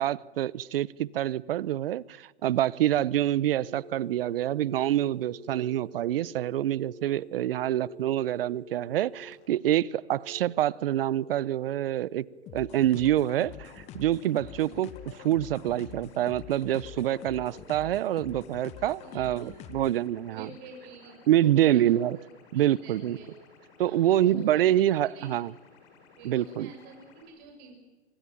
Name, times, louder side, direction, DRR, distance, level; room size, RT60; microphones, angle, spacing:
voice 1, 0.0-12.2 12.5-14.9 15.2-20.5 21.3-22.2 22.5-23.2 23.8-25.5 26.2-26.7, right 12 dB, 55° right, 0.8 m, -26 dB
sound 1, 3.5-9.3 10.2-12.5 16.5-18.5 19.0-19.8 20.7-21.2, right 2 dB, 85° right, 6.9 m, -50 dB
sound 2, 12.5-20.1, left 11 dB, 20° left, 1.0 m, -46 dB
sound 3, 13.2-27.2, left 5 dB, 40° left, 7.1 m, -57 dB
voice 2, 19.1-19.6 20.3-22.3 22.5-23.3 23.8-24.8 25.1-25.4 26.2-27.7, right 4 dB, 30° right, 6.7 m, -48 dB
26.5 x 19.0 x 9.9 m
hypercardioid pair, 140°, 33 cm